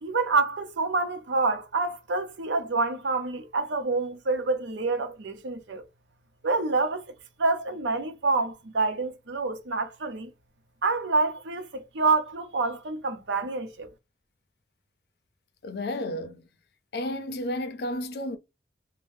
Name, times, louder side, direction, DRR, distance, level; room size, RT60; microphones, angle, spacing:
voice 1, 0.0-5.8 6.4-7.1 7.4-10.3 10.8-13.9, right 3 dB, 90° right, 0.6 m, -27 dB
voice 2, 15.6-16.4 16.9-18.4, left 1 dB, 65° left, 0.5 m, -32 dB
2.6 x 2.1 x 3.4 m
head